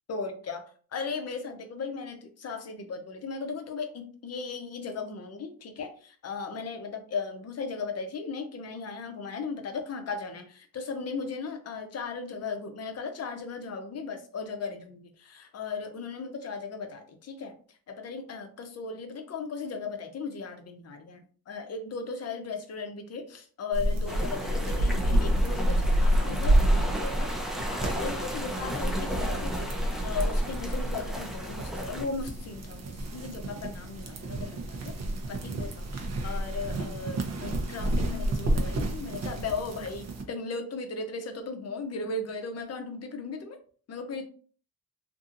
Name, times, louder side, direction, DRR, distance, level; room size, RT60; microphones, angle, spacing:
voice 1, 0.1-0.6 0.9-27.3 27.6-34.9 35.3-43.6 43.9-44.2, left 4 dB, 45° left, 6 dB, 0.7 m, -37 dB
sound 1, 23.7-40.2, right 1 dB, 45° right, 0.7 m, -29 dB
sound 2, 24.1-32.1, equal, ahead, 0.5 m, -33 dB
2.6 x 2.6 x 2.5 m, 0.43 s
cardioid pair, 95°, 37 cm